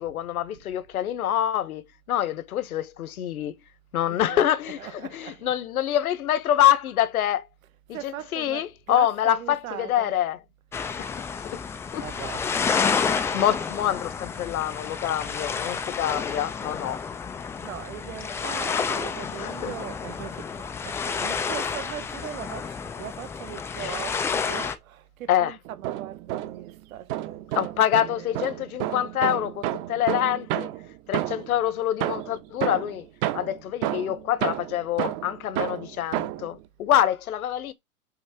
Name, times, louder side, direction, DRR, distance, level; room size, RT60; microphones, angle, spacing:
voice 1, 0.0-3.5 3.9-4.8 5.1-7.5 7.9-10.4 11.0-11.1 11.4-11.6 11.9-12.0 12.8-17.0 19.4-19.7 23.8-24.0 25.3-25.5 27.5-30.7 31.1-33.1 33.3-37.7, left 11 dB, 70° left, 1.5 m, -26 dB
voice 2, 4.1-5.6 7.9-10.1 12.0-13.0 13.3-13.4 15.6-15.9 17.6-28.6, right 12 dB, 60° right, 1.6 m, -40 dB
sound 1, 10.7-24.7, left 6 dB, 5° left, 0.4 m, -30 dB
sound 2, 25.7-26.7 27.1-31.6 32.0-36.5, right 14 dB, 40° right, 1.1 m, -31 dB
6.5 x 4.1 x 5.8 m
hypercardioid pair, 120°, 45 cm